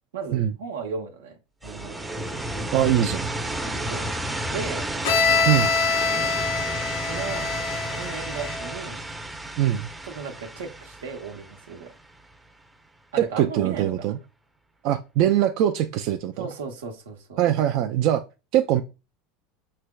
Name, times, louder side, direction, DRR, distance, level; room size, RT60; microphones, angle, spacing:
voice 1, 0.1-2.1 3.9-4.1 4.5-4.9 7.0-7.5 7.9-9.0 10.0-11.9 13.1-14.1 16.4-17.4, right 5 dB, 90° right, 0.8 m, -35 dB
sound 1, 1.6-12.3, right 1 dB, 10° right, 0.5 m, -32 dB
voice 2, 2.7-3.3 5.5-5.7 9.6-9.9 13.2-14.2 14.8-16.5 17.4-18.2 18.5-18.8, right 11 dB, 60° right, 0.3 m, -22 dB
Bowed string instrument, 5.0-8.8, left 5 dB, 75° left, 1.0 m, -25 dB
5.8 x 3.2 x 2.3 m
hypercardioid pair, 100°, 0 cm